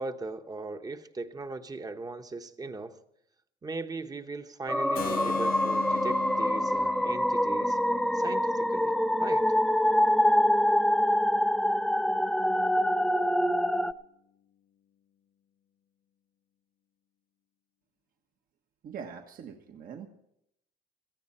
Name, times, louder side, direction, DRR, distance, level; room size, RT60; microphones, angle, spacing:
voice 1, 0.0-3.0 3.6-7.8 8.1-8.9 9.2-9.5, right 3 dB, 20° right, 8 dB, 1.0 m, -38 dB
sound 1, 4.7-13.9, equal, ahead, 0.5 m, -25 dB
Keyboard (musical), 5.0-10.8, left 9 dB, 60° left, 0.8 m, -41 dB
voice 2, 18.8-20.1, right 7 dB, 55° right, 4 dB, 1.4 m, -42 dB
17.5 x 14.0 x 4.3 m, 0.77 s
cardioid pair, 110°, 17 cm